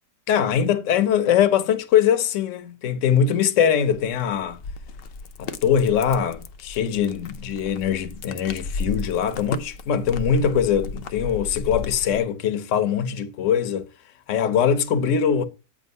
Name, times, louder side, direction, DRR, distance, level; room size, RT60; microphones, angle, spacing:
voice 1, 0.3-4.6 5.4-13.9 14.3-15.4, left 8 dB, 60° left, 1.0 m, -22 dB
sound 1, 3.9-12.2, left 4 dB, 80° left, 0.5 m, -35 dB
8.6 x 3.6 x 5.3 m
omnidirectional pair, 1.7 m